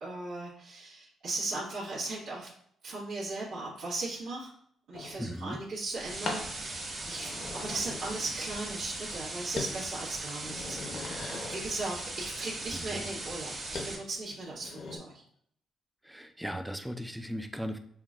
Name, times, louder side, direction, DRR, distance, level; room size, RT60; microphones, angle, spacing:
voice 1, 0.0-2.5 2.8-4.5 4.9-11.1 11.5-15.2, right 2 dB, 85° right, -10 dB, 1.2 m, -37 dB
sound 1, 4.9-5.2 6.3-6.5 7.0-8.5 8.8-9.2 9.6-9.8 10.2-11.7 13.8-13.9 14.4-15.0, left 3 dB, 55° left, 0.7 m, -40 dB
voice 2, 5.2-5.6 11.4-11.5 12.7-13.1 16.0-17.8, equal, 5° right, 8 dB, 0.3 m, -38 dB
sound 2, 5.9-13.9, right 2 dB, 35° right, 1.2 m, -39 dB
5.6 x 2.2 x 2.4 m, 0.65 s
cardioid pair, 90°, 0 cm